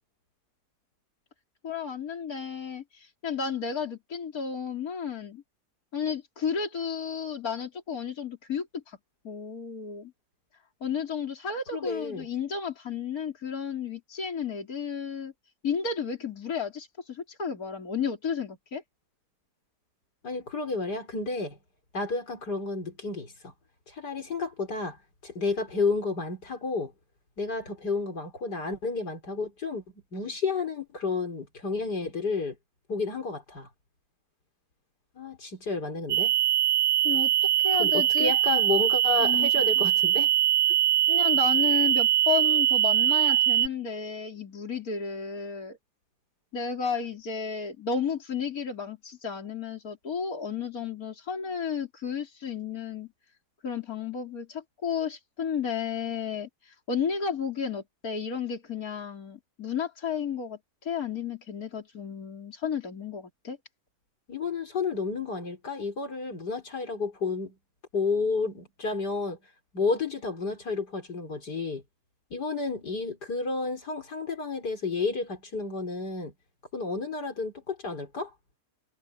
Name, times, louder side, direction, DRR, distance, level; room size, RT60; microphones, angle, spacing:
voice 1, 1.6-5.4 5.9-9.0 9.2-10.1 10.8-15.3 15.6-18.8 37.0-37.3 37.6-38.3 39.2-39.5 41.1-45.8 46.5-53.1 53.6-63.6, left 6 dB, 60° left, 4.0 m, -32 dB
voice 2, 11.7-12.3 20.2-21.6 21.9-23.5 23.9-25.0 25.2-26.9 27.4-29.8 30.1-32.6 32.9-33.7 35.1-36.3 37.8-40.3 64.3-67.5 67.9-69.4 69.7-71.8 72.3-76.3 76.7-78.3, left 4 dB, 80° left, 5.2 m, -31 dB
sound 1, 36.1-43.7, right 12 dB, 65° right, 1.0 m, -22 dB
omnidirectional pair, 1.7 m